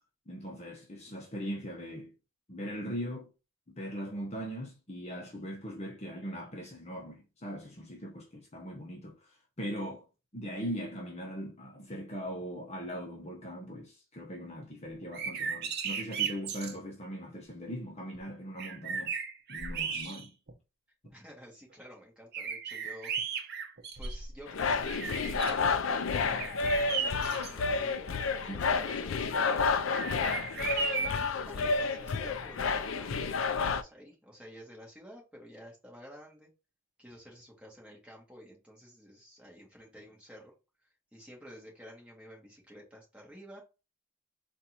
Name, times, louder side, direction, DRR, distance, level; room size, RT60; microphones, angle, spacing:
voice 1, 0.3-2.1 2.5-3.3 3.7-9.3 9.6-10.1 10.3-19.1 19.5-20.3 28.5-28.6, equal, 35° left, 0.9 m, -40 dB
sound 1, 15.0-16.8 18.1-18.2 18.6-20.5 21.1-21.2 22.3-24.4 24.8-25.6 26.4-27.5 29.9-31.3, right 6 dB, 55° right, 0.8 m, -35 dB
voice 2, 21.1-23.5 23.9-29.7 30.5-36.5 37.0-40.5 41.1-43.6, equal, 5° right, 1.7 m, -51 dB
sound 2, 24.5-33.8, left 4 dB, 75° left, 0.5 m, -30 dB
4.1 x 2.6 x 4.2 m
head